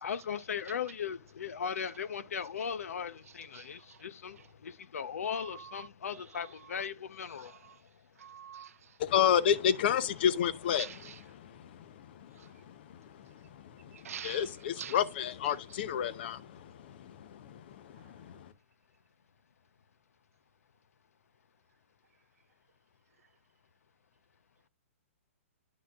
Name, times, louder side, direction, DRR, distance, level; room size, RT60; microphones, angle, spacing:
voice 1, 0.0-7.8, left 7 dB, 85° left, 0.7 m, -38 dB
voice 2, 3.5-4.0 5.3-5.9 7.4-7.7 8.2-8.7 10.8-11.2 13.9-14.5 14.8-15.0, right 8 dB, 85° right, 0.5 m, -45 dB
voice 3, 9.0-11.0 11.3-11.5 12.7-12.8 13.8-13.9 14.2-17.6 17.8-18.5, left 9 dB, 45° left, 0.7 m, -30 dB
9.9 x 6.0 x 2.4 m
hypercardioid pair, 160°, 8 cm